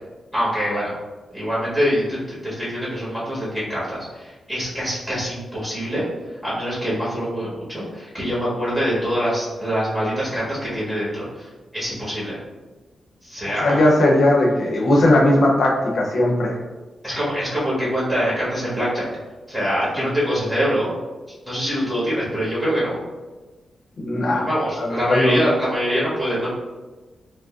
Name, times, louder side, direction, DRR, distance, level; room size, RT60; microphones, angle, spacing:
voice 1, 0.3-0.9 1.3-6.1 6.4-12.4 13.2-13.8 17.0-19.1 19.5-20.9 21.4-23.0 24.3-26.5, equal, 10° right, -8 dB, 1.3 m, -24 dB
voice 2, 13.4-16.5 20.0-20.1 24.0-24.5 24.8-25.4, left 1 dB, 65° left, -1 dB, 0.7 m, -18 dB
4.9 x 2.1 x 2.4 m, 1.2 s
cardioid pair, 105°, 0 cm